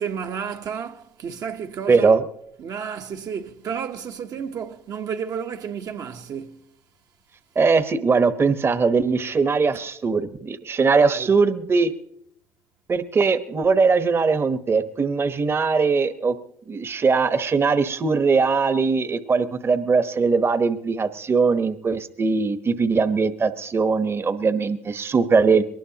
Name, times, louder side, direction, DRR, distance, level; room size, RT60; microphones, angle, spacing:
voice 1, 0.0-2.2 2.6-6.6 10.9-11.3, right 7 dB, 55° right, 1.2 m, -32 dB
voice 2, 1.9-2.3 7.5-11.9 12.9-16.3 16.7-25.6, right 4 dB, 30° right, 1.2 m, -20 dB
22.5 x 19.0 x 2.9 m
hypercardioid pair, 70°, 8 cm